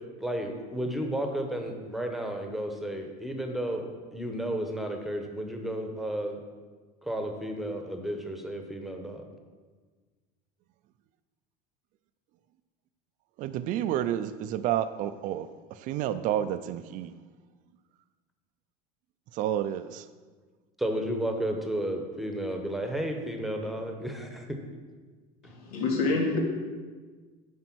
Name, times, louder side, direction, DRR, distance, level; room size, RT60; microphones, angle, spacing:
voice 1, 0.2-6.4 7.0-9.2 20.8-24.5, right 1 dB, ahead, 3 dB, 1.0 m, -32 dB
voice 2, 13.4-17.1 19.3-20.1, right 11 dB, 45° right, 11 dB, 0.4 m, -30 dB
voice 3, 25.4-26.4, left 3 dB, 85° left, 0 dB, 2.3 m, -27 dB
9.5 x 5.6 x 6.1 m, 1.4 s
supercardioid pair, 135°, 18 cm